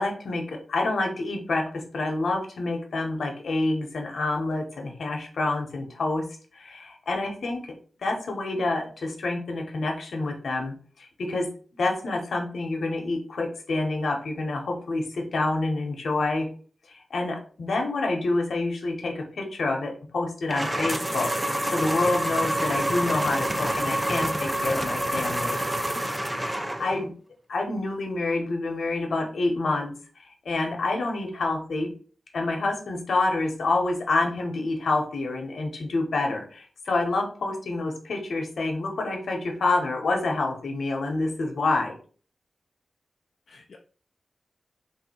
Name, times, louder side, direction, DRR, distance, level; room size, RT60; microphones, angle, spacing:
voice 1, 0.0-6.2 6.5-7.7 8.0-11.5 11.8-16.5 16.9-25.6 26.8-27.1 27.5-31.9 32.3-41.9, left 2 dB, 90° left, 3 dB, 1.0 m, -28 dB
sound 1, 20.5-27.0, right 1 dB, 15° right, 0.5 m, -27 dB
voice 2, 25.1-26.3 43.5-43.8, left 3 dB, 70° left, 1 dB, 0.4 m, -46 dB
3.5 x 2.7 x 4.3 m, 0.41 s
wide cardioid pair, 115°, 0 cm